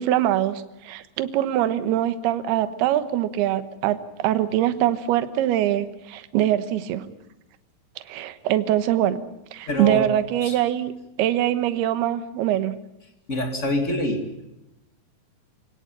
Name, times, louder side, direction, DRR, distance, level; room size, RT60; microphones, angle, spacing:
voice 1, 0.0-7.1 8.1-9.2 9.5-10.9 11.2-12.8, right 12 dB, 70° right, 11 dB, 2.7 m, -23 dB
voice 2, 9.7-10.1 10.4-10.5 13.3-14.3, left 1 dB, 40° left, 4 dB, 1.0 m, -25 dB
26.5 x 17.0 x 9.8 m, 0.93 s
omnidirectional pair, 5.7 m